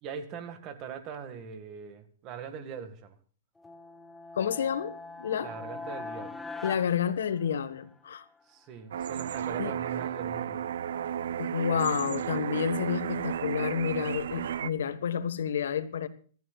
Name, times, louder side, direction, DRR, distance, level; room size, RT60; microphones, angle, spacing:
voice 1, 0.0-3.1 5.4-6.4 8.5-10.6, right 6 dB, 30° right, 1.9 m, -41 dB
sound 1, 3.6-7.9, left 3 dB, 5° left, 1.0 m, -42 dB
voice 2, 4.3-5.5 6.6-8.3 9.6-9.8 11.4-16.1, left 8 dB, 75° left, 1.5 m, -30 dB
sound 2, 8.9-14.7, right 9 dB, 70° right, 0.7 m, -33 dB
24.5 x 14.0 x 2.4 m
hypercardioid pair, 155°, 0 cm